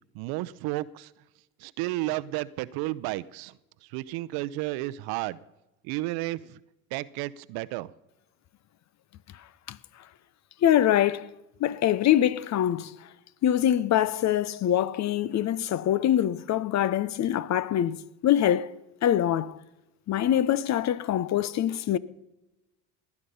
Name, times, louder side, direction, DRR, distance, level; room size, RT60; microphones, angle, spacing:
voice 1, 0.1-1.1 1.6-5.4 5.8-6.6 6.9-7.9, right 18 dB, 65° right, 0.8 m, -32 dB
voice 2, 10.6-11.3 11.6-12.9 13.4-18.7 19.0-19.6 20.1-22.0, left 11 dB, 40° left, 0.8 m, -24 dB
19.0 x 11.0 x 5.5 m
hypercardioid pair, 75°, 41 cm